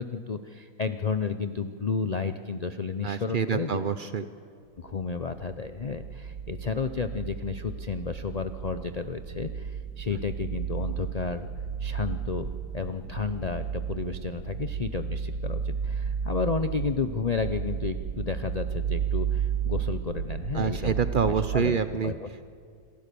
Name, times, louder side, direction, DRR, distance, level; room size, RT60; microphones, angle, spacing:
voice 1, 0.0-3.8 4.8-11.5 11.8-21.0 21.3-21.8 22.0-22.4, left 5 dB, 90° left, 10 dB, 0.3 m, -32 dB
voice 2, 3.0-4.2 20.5-22.1, right 6 dB, 70° right, 12 dB, 0.5 m, -27 dB
sound 1, 4.9-21.6, right 7 dB, 90° right, 1.6 m, -33 dB
27.0 x 14.5 x 6.9 m, 2.2 s
omnidirectional pair, 1.7 m